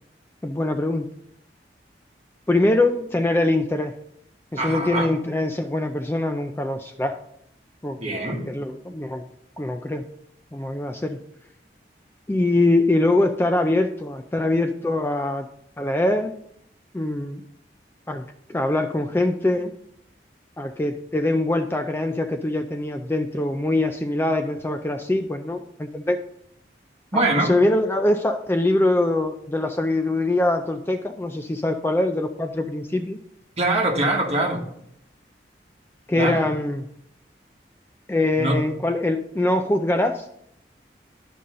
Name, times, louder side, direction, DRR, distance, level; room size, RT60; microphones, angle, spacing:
voice 1, 0.4-1.1 2.5-3.9 4.5-7.2 7.8-8.1 8.5-9.3 9.6-10.0 10.5-11.2 12.3-15.5 15.8-16.3 16.9-17.4 18.1-19.7 20.6-26.2 27.1-33.2 36.1-36.9 38.1-40.3, left 2 dB, 15° left, 6 dB, 0.3 m, -23 dB
voice 2, 4.6-5.1 8.0-8.5 27.1-27.5 33.6-34.6 36.1-36.5 38.4-38.6, right 2 dB, 35° right, 0 dB, 1.5 m, -23 dB
11.5 x 5.4 x 3.7 m, 0.72 s
head